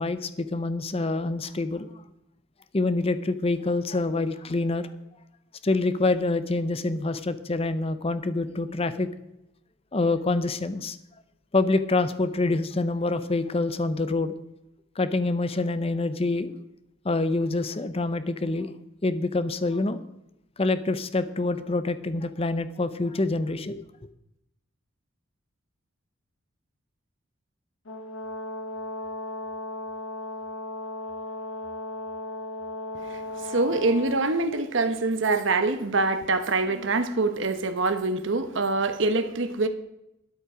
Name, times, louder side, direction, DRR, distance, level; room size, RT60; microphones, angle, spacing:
voice 1, 0.0-1.9 2.7-4.9 5.6-9.1 9.9-11.0 11.5-14.3 15.0-16.5 17.0-18.7 19.0-20.0 20.6-23.8, left 2 dB, 30° left, 0.6 m, -26 dB
Brass instrument, 27.9-34.2, left 2 dB, 70° left, 1.6 m, -36 dB
voice 2, 33.4-39.7, right 3 dB, 60° right, 1.0 m, -25 dB
13.0 x 9.6 x 5.0 m
head